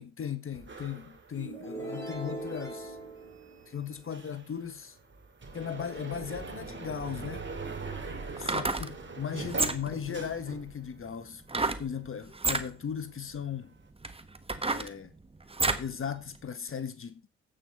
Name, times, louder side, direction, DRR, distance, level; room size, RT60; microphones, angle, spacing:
voice 1, 0.0-3.0 3.7-4.9 5.5-7.5 8.4-13.7 14.7-15.1 15.8-17.2, left 8 dB, 40° left, 1.4 m, -37 dB
sound 1, 0.5-11.1 11.4-12.7, right 4 dB, 35° right, 2.9 m, -43 dB
sound 2, 1.3-4.1, right 2 dB, 10° left, 5.7 m, -40 dB
sound 3, 8.3-8.9 9.5-10.0 11.5-11.9 12.3-12.7 13.4-13.5 14.0-15.9 16.4-16.5, right 3 dB, 15° right, 1.4 m, -30 dB
8.4 x 7.7 x 5.4 m
hypercardioid pair, 55°, 33 cm